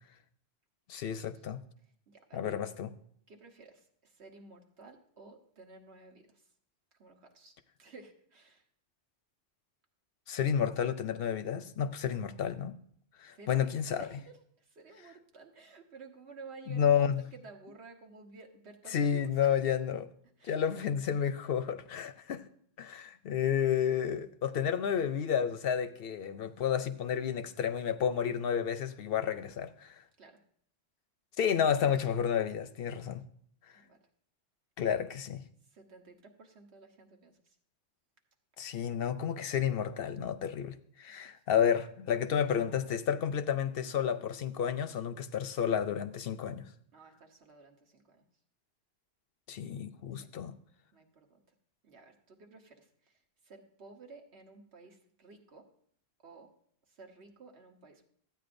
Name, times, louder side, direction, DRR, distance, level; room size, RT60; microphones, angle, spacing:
voice 1, 0.9-1.6 2.3-2.9 10.3-12.8 13.2-14.1 16.7-17.2 18.9-20.1 20.4-22.4 22.8-30.0 31.4-33.2 34.8-35.4 38.6-46.7 49.5-50.5, left 8 dB, 65° left, 11 dB, 0.8 m, -31 dB
voice 2, 2.1-2.6 3.3-6.3 7.0-7.5 7.8-8.6 13.3-13.7 14.0-16.9 17.3-19.5 20.4-20.6 30.2-30.4 33.7-34.0 35.7-37.5 41.1-41.2 46.9-48.2 50.9-51.4 51.8-53.2 53.4-55.7 56.2-56.5 56.9-58.1, right 4 dB, 85° right, 3 dB, 1.5 m, -53 dB
14.0 x 9.0 x 2.6 m, 0.63 s
omnidirectional pair, 1.1 m